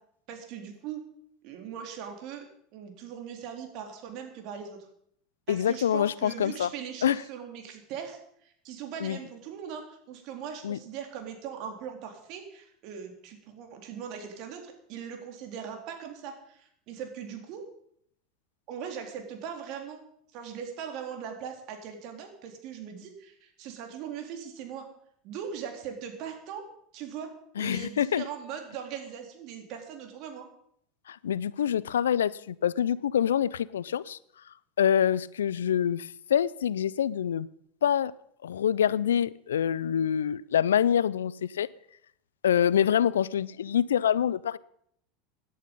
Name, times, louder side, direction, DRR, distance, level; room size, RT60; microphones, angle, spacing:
voice 1, 0.3-1.0 1.4-2.5 2.7-4.8 5.5-17.7 18.7-20.0 20.3-24.9 25.2-26.6 26.9-27.3 27.6-30.5, right 8 dB, 55° right, 4 dB, 3.8 m, -40 dB
voice 2, 5.5-6.7 7.0-7.2 9.0-9.2 10.6-10.8 27.6-28.2 31.1-34.2 34.8-37.5 37.8-38.1 38.4-41.7 42.4-44.6, left 9 dB, 85° left, 21 dB, 0.5 m, -26 dB
17.0 x 11.0 x 5.4 m, 0.68 s
hypercardioid pair, 85°, 0 cm